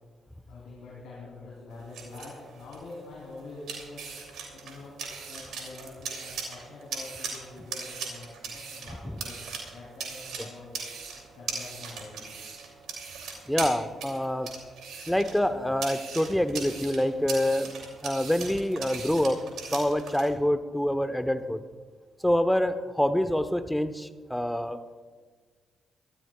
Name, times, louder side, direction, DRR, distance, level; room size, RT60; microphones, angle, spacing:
voice 1, 0.5-5.0 5.3-9.4 9.7-10.9 11.3-12.2, left 3 dB, 75° left, -5 dB, 3.6 m, -45 dB
sound 1, 1.7-20.3, right 5 dB, 70° right, 2.9 m, -40 dB
voice 2, 13.5-14.5 15.1-17.7 18.0-19.4 19.7-21.6 22.2-25.0, left 1 dB, 5° left, 10 dB, 1.1 m, -26 dB
23.5 x 14.0 x 2.4 m, 1.5 s
hypercardioid pair, 40°, 0 cm